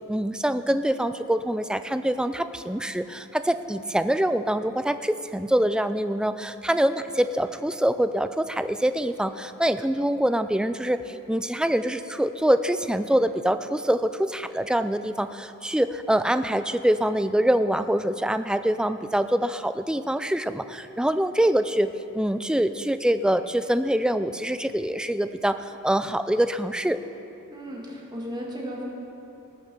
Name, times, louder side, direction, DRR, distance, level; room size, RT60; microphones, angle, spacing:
voice 1, 0.1-21.9 22.1-27.0, right 1 dB, 5° right, 11 dB, 0.3 m, -25 dB
voice 2, 27.5-28.9, equal, 20° right, -3 dB, 2.2 m, -35 dB
19.0 x 6.7 x 6.5 m, 2.8 s
head